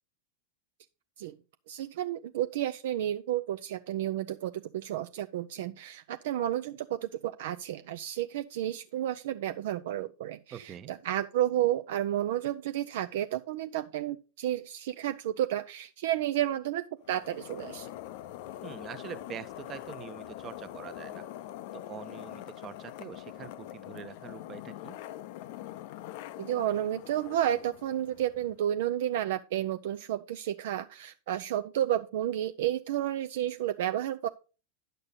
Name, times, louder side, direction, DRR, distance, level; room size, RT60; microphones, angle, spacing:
voice 1, 1.7-17.9 26.4-34.3, right 12 dB, 55° right, 9 dB, 0.5 m, -31 dB
voice 2, 10.5-10.9 18.6-21.2 21.7-24.9, right 8 dB, 30° right, 13 dB, 0.9 m, -44 dB
sound 1, 17.0-28.6, left 13 dB, 50° left, 0.6 m, -44 dB
10.5 x 6.6 x 3.9 m, 0.32 s
figure-of-eight pair, 90°, 0 cm